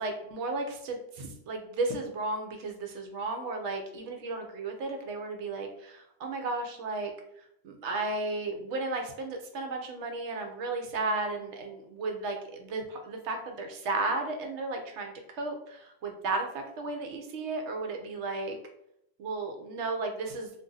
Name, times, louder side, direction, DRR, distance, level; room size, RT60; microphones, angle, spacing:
voice 1, 0.0-7.1 7.6-18.6 19.2-20.5, right 3 dB, 70° right, 4 dB, 0.9 m, -34 dB
2.5 x 2.3 x 3.8 m, 0.76 s
omnidirectional pair, 1.3 m